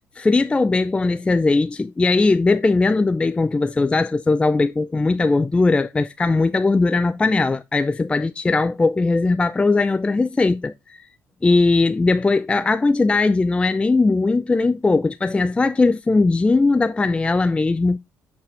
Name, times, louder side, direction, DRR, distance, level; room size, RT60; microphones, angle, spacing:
voice 1, 0.2-11.0 11.4-18.0, left 3 dB, 20° left, 0.4 m, -19 dB
6.6 x 4.1 x 4.4 m
supercardioid pair, 75°, 6 cm